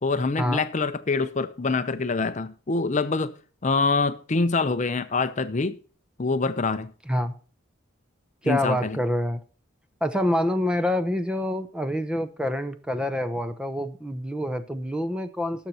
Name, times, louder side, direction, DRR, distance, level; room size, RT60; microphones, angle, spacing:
voice 1, 0.0-3.3 3.6-5.8 6.2-6.9 8.4-9.0, left 3 dB, 35° left, 0.6 m, -25 dB
voice 2, 8.4-9.4 10.0-15.7, left 1 dB, 5° right, 0.7 m, -26 dB
19.0 x 6.6 x 2.9 m
head